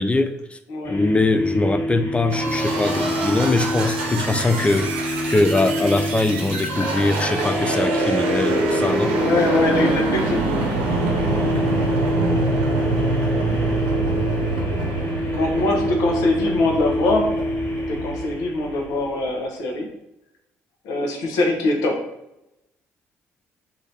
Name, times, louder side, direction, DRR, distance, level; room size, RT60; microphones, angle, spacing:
voice 1, 0.0-0.6 0.9-4.9 5.3-9.1, left 2 dB, 20° left, 9 dB, 0.4 m, -22 dB
sound 1, 0.8-19.1, left 1 dB, 35° left, 1.4 m, -27 dB
sound 2, 2.3-18.9, right 2 dB, 75° right, 0.7 m, -25 dB
voice 2, 9.2-10.4 15.3-17.3 17.9-19.9 20.8-21.9, left 2 dB, 65° left, 2 dB, 0.8 m, -22 dB
3.1 x 2.8 x 3.9 m, 0.86 s
figure-of-eight pair, 50°, 7 cm